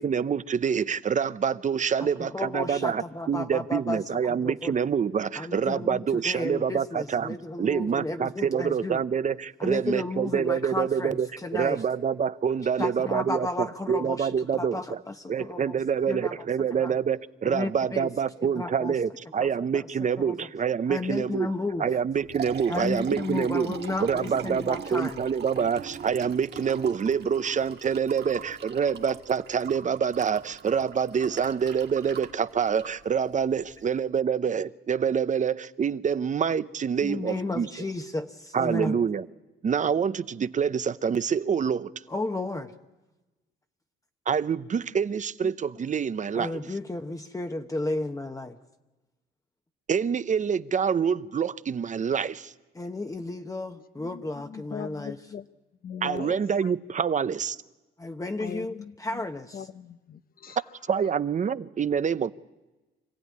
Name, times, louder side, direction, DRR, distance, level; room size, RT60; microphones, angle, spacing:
voice 1, 0.0-15.0 15.3-21.5 21.8-23.7 24.0-37.7 38.5-39.3 39.6-41.9 44.3-46.5 49.9-52.5 56.0-57.6 60.9-62.3, right 7 dB, 40° right, 0.7 m, -26 dB
voice 2, 2.0-4.7 5.4-9.0 9.6-11.8 12.8-15.8 16.1-16.3 16.8-16.9 17.5-18.1 18.6-18.9 19.4-19.8 20.2-20.3 20.9-21.9 22.7-25.2 37.0-39.0 42.1-42.7 46.3-48.6 52.8-55.2 58.0-59.6, left 2 dB, 15° left, 1.1 m, -33 dB
Liquid, 22.0-33.9, right 7 dB, 55° right, 1.7 m, -42 dB
voice 3, 53.8-55.5 55.8-56.7 58.4-59.3 59.5-60.6 61.0-61.2, left 8 dB, 45° left, 0.9 m, -40 dB
26.0 x 16.0 x 9.6 m
cardioid pair, 90°, 20 cm